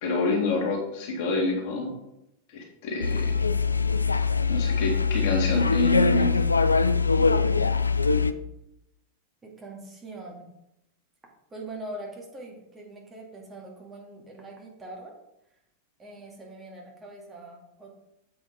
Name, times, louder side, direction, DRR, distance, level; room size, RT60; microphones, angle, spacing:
voice 1, 0.0-2.0 2.5-3.3 4.5-6.3, left 3 dB, 50° left, 0 dB, 2.2 m, -27 dB
sound 1, 3.0-8.3, left 4 dB, 80° left, 0.4 m, -23 dB
voice 2, 9.4-10.5 11.5-15.2 16.0-17.9, right 2 dB, 20° right, -1 dB, 2.1 m, -42 dB
7.8 x 5.5 x 4.9 m, 0.83 s
figure-of-eight pair, 90°, 0 cm